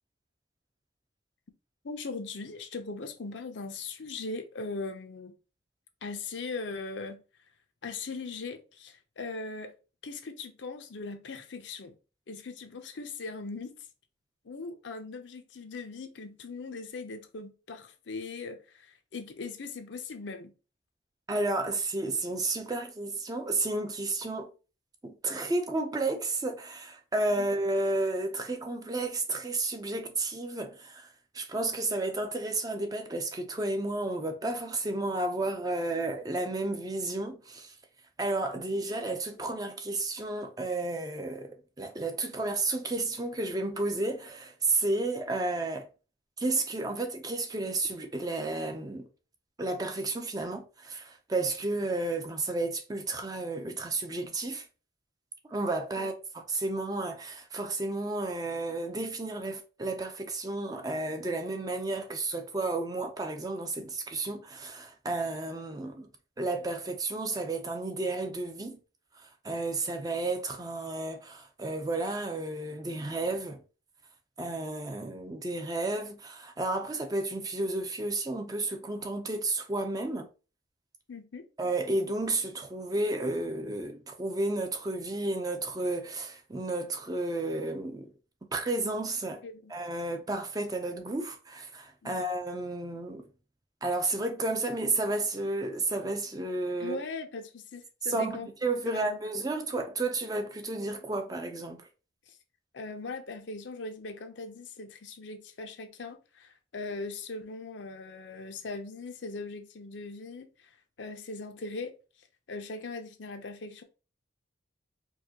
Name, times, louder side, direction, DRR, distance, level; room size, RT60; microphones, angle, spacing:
voice 1, 1.8-5.3 6.0-7.2 7.8-9.7 10.0-12.0 12.3-13.8 14.4-20.5 27.4-27.5 56.0-56.1 81.1-81.5 89.4-89.7 92.0-92.2 96.8-98.5 98.9-99.2 102.3-102.4 102.7-110.5 111.0-111.9 112.5-113.8, left 3 dB, 75° left, 0.6 m, -40 dB
voice 2, 21.3-24.5 25.0-31.1 31.3-37.7 38.2-45.9 46.4-49.1 49.6-54.6 55.5-56.1 56.5-66.1 66.4-68.8 69.2-73.6 74.4-80.3 81.6-88.1 88.5-89.4 89.7-93.2 93.8-97.0 98.1-101.8, right 2 dB, 20° right, 0.5 m, -32 dB
4.5 x 2.2 x 2.8 m
head